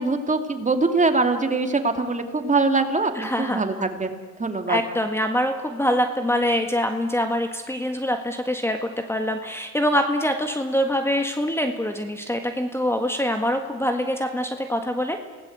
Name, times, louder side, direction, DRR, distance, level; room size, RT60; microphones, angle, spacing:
voice 1, 0.0-4.8, right 3 dB, 25° right, 6 dB, 2.7 m, -23 dB
voice 2, 3.2-3.6 4.7-15.2, equal, 10° left, 5 dB, 1.8 m, -24 dB
27.5 x 18.5 x 8.1 m, 1.4 s
cardioid pair, 90°, 30 cm